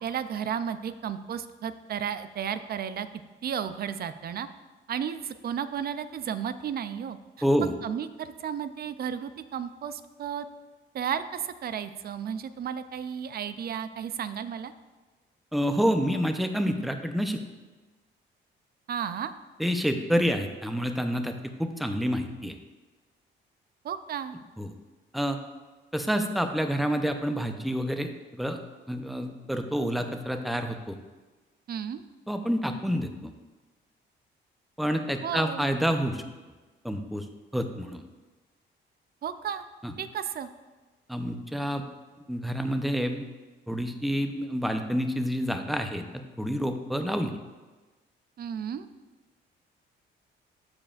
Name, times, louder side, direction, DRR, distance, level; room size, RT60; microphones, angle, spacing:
voice 1, 0.0-3.1 3.4-4.5 4.9-7.2 7.6-10.5 10.9-14.7 18.9-19.3 23.8-24.4 31.7-32.0 35.2-35.7 39.2-39.6 40.0-40.5 48.4-48.9, right 8 dB, 50° right, 12 dB, 0.5 m, -33 dB
voice 2, 7.4-7.7 15.5-17.4 19.6-22.6 24.6-24.7 25.1-25.4 25.9-28.6 28.9-31.0 32.3-33.3 34.8-36.2 36.8-37.2 37.5-38.0 39.8-39.9 41.1-41.8 42.3-43.3 43.7-47.4, equal, ahead, 6 dB, 0.7 m, -28 dB
14.5 x 4.9 x 2.5 m, 1.2 s
cardioid pair, 90°, 20 cm